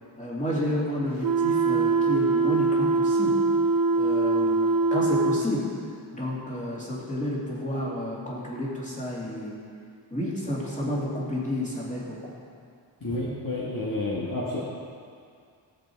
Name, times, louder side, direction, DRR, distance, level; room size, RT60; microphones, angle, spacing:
voice 1, 0.2-3.4 4.0-9.6 10.1-12.3, equal, 15° left, -6 dB, 2.7 m, -31 dB
sound 1, 1.2-5.5, right 3 dB, 50° right, 0.7 m, -23 dB
voice 2, 13.0-14.6, left 2 dB, 45° left, -6 dB, 1.6 m, -30 dB
16.0 x 8.0 x 4.6 m, 2.3 s
wide cardioid pair, 145°, 47 cm